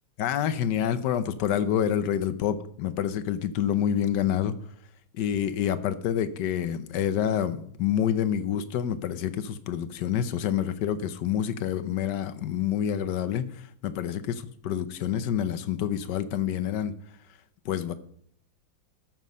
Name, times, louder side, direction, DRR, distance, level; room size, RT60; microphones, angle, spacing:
voice 1, 0.2-4.5 5.1-16.9 17.6-17.9, left 9 dB, 70° left, 13 dB, 1.2 m, -27 dB
13.5 x 6.1 x 5.3 m, 0.65 s
omnidirectional pair, 2.2 m